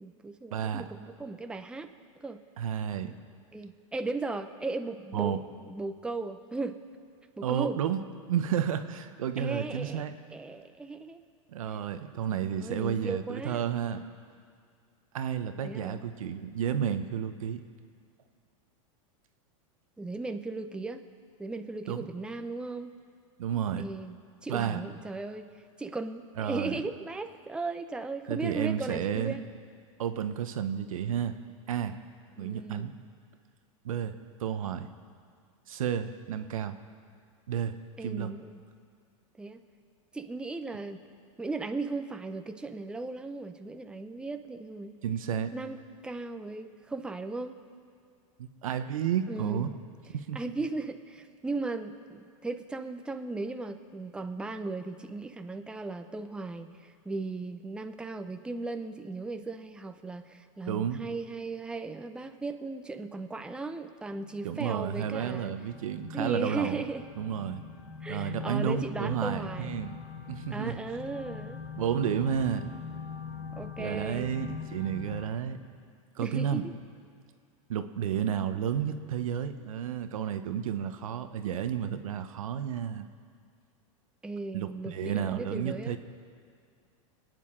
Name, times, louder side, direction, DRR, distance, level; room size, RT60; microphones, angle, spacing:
voice 1, 0.0-1.9 2.2-2.4 3.5-5.3 5.7-6.8 7.4-7.8 9.4-10.0 10.3-11.2 12.3-13.6 15.6-16.0 20.0-21.0 21.4-22.9 23.8-25.5 25.8-29.4 32.4-32.9 38.0-38.6 39.4-39.6 40.1-41.0 41.4-45.0 45.5-47.6 49.3-49.7 50.3-65.5 66.1-67.0 68.0-69.7 70.5-71.6 73.5-74.3 76.2-76.7 84.2-86.0, right 3 dB, 5° right, 7 dB, 0.6 m, -37 dB
voice 2, 0.5-0.8 2.6-3.1 5.1-5.4 7.4-8.0 8.3-10.1 11.5-14.1 15.1-17.6 21.9-22.0 23.4-23.8 24.5-24.8 26.4-26.8 28.3-29.4 30.0-31.4 31.7-32.0 32.4-32.9 33.8-34.9 35.7-36.8 37.5-38.3 45.0-45.5 48.4-49.7 50.1-50.4 60.7-61.0 64.4-66.8 67.2-67.6 68.1-70.0 70.3-70.8 71.7-72.7 73.8-75.6 76.2-76.6 77.7-83.1 84.5-86.0, right 8 dB, 90° right, 9 dB, 0.9 m, -31 dB
sound 1, 64.1-75.3, left 6 dB, 80° left, 2.1 m, -42 dB
26.5 x 9.3 x 3.8 m, 2.2 s
supercardioid pair, 125°, 17 cm